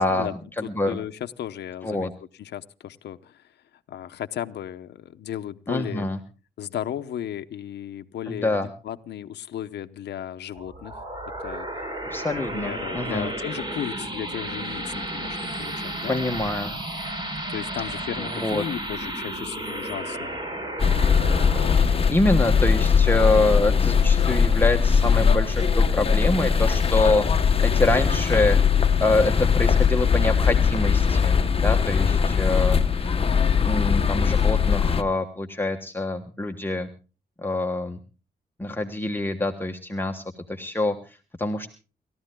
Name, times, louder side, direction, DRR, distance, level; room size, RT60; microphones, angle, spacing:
voice 1, 0.0-1.0 1.8-2.1 5.7-6.2 8.3-8.7 12.1-13.3 16.1-16.8 18.2-18.6 21.6-27.3 27.6-28.6 29.0-33.1 33.6-36.9 37.4-38.0 38.6-41.7, left 2 dB, 10° left, 3 dB, 1.3 m, -26 dB
voice 2, 0.6-3.5 3.9-6.1 6.6-11.0 11.4-11.7 12.5-16.2 17.5-20.4 21.8-22.1, left 10 dB, 85° left, 8 dB, 0.8 m, -35 dB
sound 1, 10.5-23.7, right 1 dB, 25° right, 3.8 m, -33 dB
sound 2, 20.8-35.0, left 6 dB, 35° left, 1.0 m, -20 dB
29.5 x 14.0 x 2.2 m, 0.34 s
cardioid pair, 95°, 17 cm